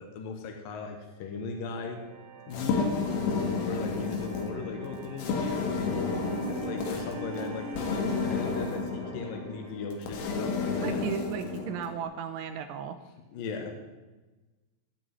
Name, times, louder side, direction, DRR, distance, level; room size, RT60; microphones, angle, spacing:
voice 1, 0.0-2.0 2.5-3.0 3.6-6.2 6.5-11.0 13.3-13.7, left 4 dB, 65° left, 4 dB, 2.3 m, -38 dB
sound 1, 1.1-12.1, right 8 dB, 65° right, 3.8 m, -50 dB
sound 2, 2.5-12.0, left 4 dB, 85° left, 4.4 m, -32 dB
sound 3, 5.8-8.8, right 1 dB, 35° left, 1.1 m, -39 dB
voice 2, 10.8-13.0, right 8 dB, 80° right, 7 dB, 2.9 m, -35 dB
17.0 x 6.2 x 9.2 m, 1.2 s
omnidirectional pair, 5.7 m